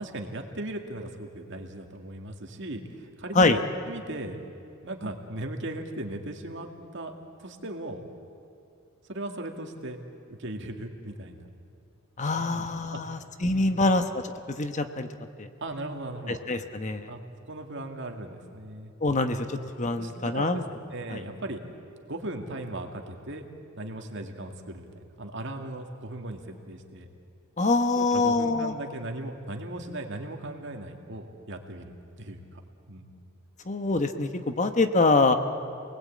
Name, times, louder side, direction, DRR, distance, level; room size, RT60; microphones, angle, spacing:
voice 1, 0.0-4.4 4.8-7.1 7.4-8.0 9.1-10.0 10.3-11.5 12.3-13.2 13.5-13.9 15.6-16.4 17.1-17.2 17.5-18.9 20.0-20.6 20.9-21.6 22.1-23.5 23.8-27.1 28.0-32.6 32.9-33.2, right 1 dB, 60° right, 4 dB, 2.2 m, -38 dB
voice 2, 12.2-14.2 14.5-15.1 15.4-15.5 16.3-17.1 19.0-20.6 21.1-21.2 27.6-28.7 33.7-35.3, left 3 dB, 35° left, 8 dB, 1.0 m, -25 dB
28.0 x 19.5 x 8.6 m, 2.6 s
head